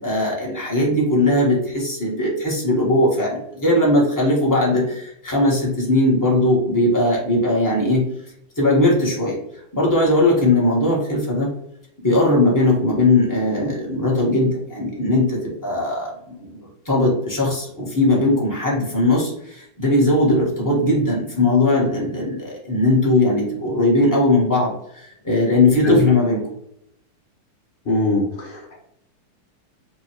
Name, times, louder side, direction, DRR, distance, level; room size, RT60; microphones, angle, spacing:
voice 1, 0.0-8.0 8.6-9.4 9.7-11.5 12.0-26.4, left 2 dB, 10° left, -3 dB, 1.1 m, -19 dB
voice 2, 27.8-28.7, left 1 dB, 80° left, -3 dB, 0.5 m, -21 dB
3.7 x 2.8 x 4.4 m, 0.75 s
omnidirectional pair, 2.3 m